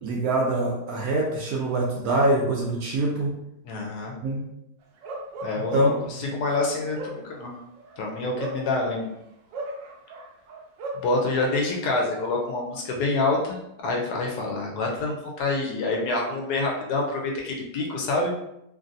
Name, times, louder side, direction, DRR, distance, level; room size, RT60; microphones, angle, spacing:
voice 1, 0.0-3.4 4.2-4.4 5.7-5.9, right 1 dB, 70° right, -1 dB, 0.9 m, -24 dB
voice 2, 3.6-4.1 5.4-7.5 8.0-9.1 10.9-18.3, left 2 dB, 70° left, 0 dB, 1.1 m, -27 dB
Bark, 5.0-6.1 6.7-9.1 9.5-11.1, right 1 dB, 85° right, 1.3 m, -36 dB
3.2 x 2.6 x 2.5 m, 0.82 s
omnidirectional pair, 1.9 m